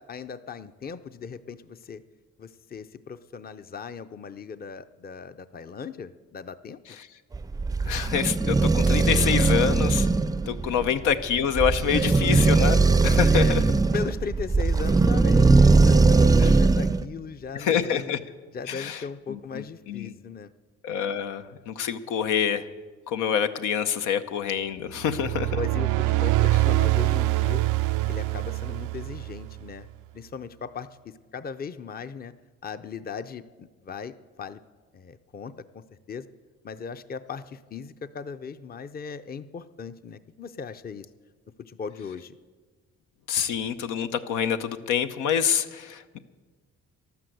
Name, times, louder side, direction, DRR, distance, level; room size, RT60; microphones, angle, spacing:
voice 1, 0.0-2.0 2.4-6.8 10.7-10.8 11.9-12.0 12.6-12.7 13.3-13.6 13.9-18.1 18.5-20.5 25.5-27.6 28.1-29.9 30.1-32.3 32.6-34.6 34.9-36.3 36.6-41.1 41.6-42.4, left 5 dB, 30° left, 12 dB, 0.6 m, -38 dB
sound 1, 7.3-17.0, right 3 dB, 15° right, 0.4 m, -20 dB
voice 2, 7.9-10.1 10.5-13.6 16.4-16.5 17.5-18.2 18.7-19.0 19.3-20.1 20.8-22.6 23.1-25.6 43.3-46.2, left 8 dB, 85° left, 9 dB, 0.9 m, -26 dB
sound 2, 25.0-29.7, right 18 dB, 90° right, 0.5 m, -24 dB
13.0 x 11.5 x 7.8 m, 1.4 s
cardioid pair, 90°, 30 cm